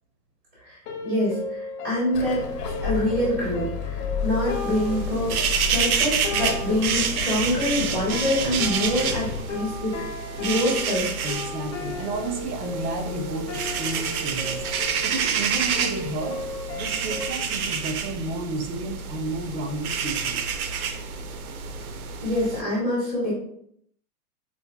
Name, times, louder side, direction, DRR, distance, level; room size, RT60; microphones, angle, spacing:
sound 1, 0.9-17.3, left 3 dB, 50° left, 0.6 m, -36 dB
voice 1, 1.0-2.4 2.8-5.4 5.7-9.9 10.4-11.1 22.2-23.3, left 1 dB, 10° right, -11 dB, 0.4 m, -25 dB
sound 2, 2.1-9.4, left 5 dB, 85° left, 0.8 m, -32 dB
sound 3, 4.3-22.6, right 6 dB, 65° right, 0.6 m, -29 dB
voice 2, 11.2-14.6 15.0-16.4 16.7-20.4, right 2 dB, 85° right, 5 dB, 0.9 m, -32 dB
4.5 x 2.5 x 2.3 m, 0.69 s
hypercardioid pair, 160°, 47 cm